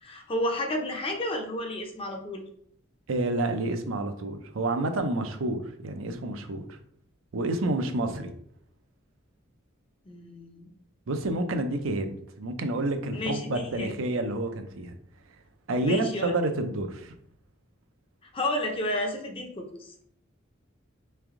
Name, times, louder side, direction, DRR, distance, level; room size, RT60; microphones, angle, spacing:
voice 1, 0.0-2.4 10.1-10.7 13.1-13.9 15.8-16.4 18.3-19.9, left 1 dB, 25° left, 3 dB, 0.6 m, -31 dB
voice 2, 3.1-6.8 7.3-8.3 11.1-14.9 15.7-17.1, right 2 dB, 80° right, 6 dB, 0.6 m, -29 dB
3.4 x 3.3 x 3.6 m, 0.67 s
head